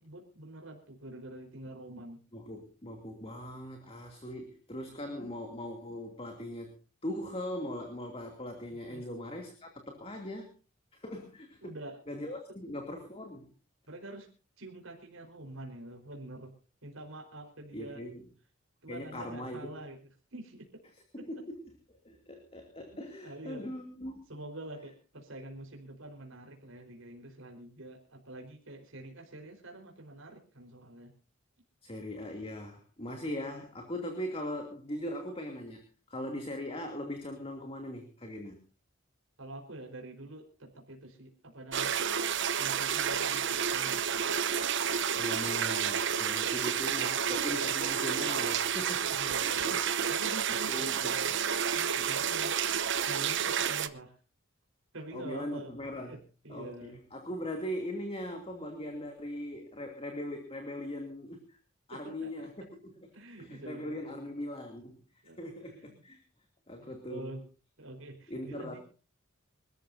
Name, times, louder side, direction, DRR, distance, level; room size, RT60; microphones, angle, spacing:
voice 1, 0.0-2.2 5.1-5.3 8.9-9.0 11.6-12.0 13.9-14.3 14.6-16.5 16.8-18.0 18.8-20.0 20.3-20.7 21.2-21.3 23.2-23.6 24.3-31.1 39.4-42.0 42.6-44.3 46.4-46.8 49.1-51.3 51.7-52.8 53.1-54.2 54.9-56.2 56.4-57.0 61.9-62.5 63.1-64.3 65.2-65.5 65.9-66.0 66.8-67.4 67.8-68.8, right 1 dB, 80° right, 1 dB, 4.6 m, -46 dB
voice 2, 2.3-6.8 7.0-10.5 10.9-11.8 12.1-13.5 17.7-18.2 18.9-19.7 21.1-24.2 31.8-38.6 45.1-50.0 50.3-50.4 50.7-51.3 55.1-56.2 56.5-61.6 61.9-63.0 63.4-65.0 65.2-66.2 66.7-67.4 68.3-68.8, left 1 dB, 30° left, 3 dB, 2.7 m, -40 dB
sound 1, 41.7-53.9, right 8 dB, 60° right, 1.0 m, -30 dB
26.0 x 14.0 x 2.7 m, 0.34 s
head